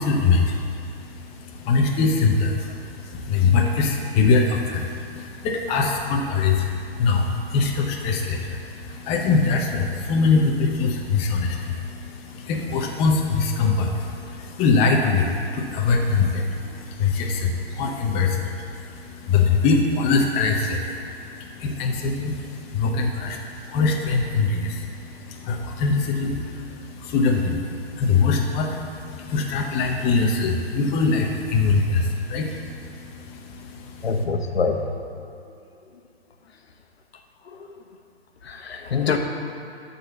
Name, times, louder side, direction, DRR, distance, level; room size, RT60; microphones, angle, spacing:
voice 1, 0.0-34.2, left 4 dB, 20° left, 0 dB, 0.7 m, -23 dB
voice 2, 34.0-34.8 38.5-39.2, left 5 dB, 75° left, 4 dB, 1.1 m, -24 dB
12.0 x 4.2 x 6.9 m, 2.6 s
hypercardioid pair, 140°, 31 cm